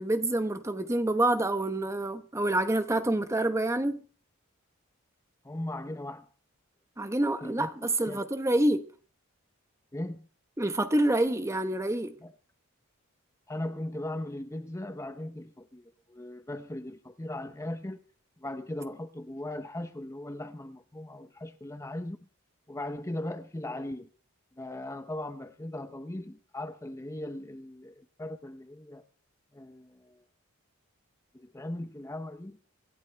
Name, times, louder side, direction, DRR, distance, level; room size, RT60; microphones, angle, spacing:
voice 1, 0.0-4.0 7.0-8.9 10.6-12.2, right 1 dB, 15° right, 0.9 m, -27 dB
voice 2, 5.4-6.3 7.4-8.2 9.9-10.3 12.2-12.3 13.5-18.0 18.4-22.2 22.7-24.1 24.6-29.0 29.5-30.2 31.3-32.6, left 1 dB, 15° left, 0.6 m, -38 dB
25.5 x 12.0 x 3.4 m
head